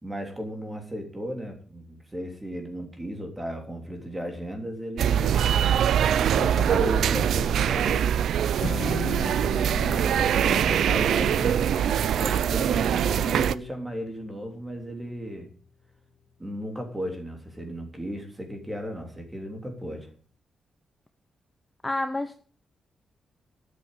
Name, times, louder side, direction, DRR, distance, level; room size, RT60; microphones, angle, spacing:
voice 1, 0.0-5.4 6.3-8.1 10.5-15.5 16.4-20.1, equal, 10° right, 4 dB, 3.2 m, -35 dB
sound 1, 5.0-13.5, right 9 dB, 85° right, 0.6 m, -23 dB
Strum, 8.6-14.9, left 6 dB, 40° left, 1.0 m, -39 dB
voice 2, 9.7-10.8 21.8-22.4, left 2 dB, 15° left, 7 dB, 0.9 m, -32 dB
12.5 x 8.7 x 8.2 m, 0.42 s
wide cardioid pair, 165°, 0 cm